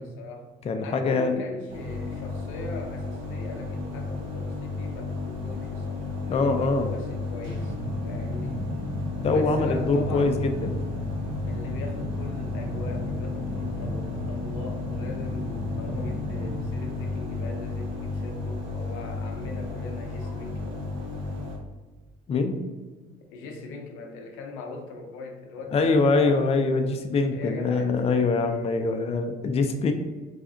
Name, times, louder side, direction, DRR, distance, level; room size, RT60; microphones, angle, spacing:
voice 1, 0.0-0.5 0.8-8.6 9.3-10.6 11.4-20.8 23.3-26.4 27.3-28.0, left 3 dB, 85° left, 3 dB, 0.6 m, -40 dB
voice 2, 0.6-1.4 6.3-6.9 9.2-10.8 22.3-22.6 25.7-29.9, left 3 dB, 30° left, 6 dB, 0.4 m, -24 dB
sound 1, 1.7-21.6, left 3 dB, 70° right, 0.9 m, -33 dB
sound 2, 7.4-16.8, right 1 dB, 5° left, 1.2 m, -36 dB
3.3 x 2.4 x 3.6 m, 1.3 s
supercardioid pair, 75°, 20 cm